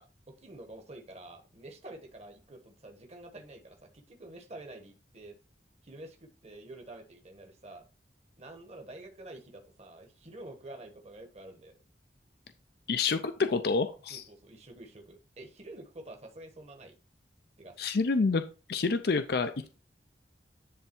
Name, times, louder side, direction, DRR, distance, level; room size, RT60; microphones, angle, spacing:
voice 1, 0.0-5.4 5.8-7.8 8.3-11.7 14.1-16.9 17.6-17.8 19.6-19.7, right 2 dB, 35° right, 4 dB, 1.2 m, -48 dB
voice 2, 12.9-14.2 17.8-18.4 18.7-19.7, left 4 dB, 60° left, 9 dB, 0.5 m, -28 dB
10.0 x 3.5 x 4.5 m, 0.34 s
head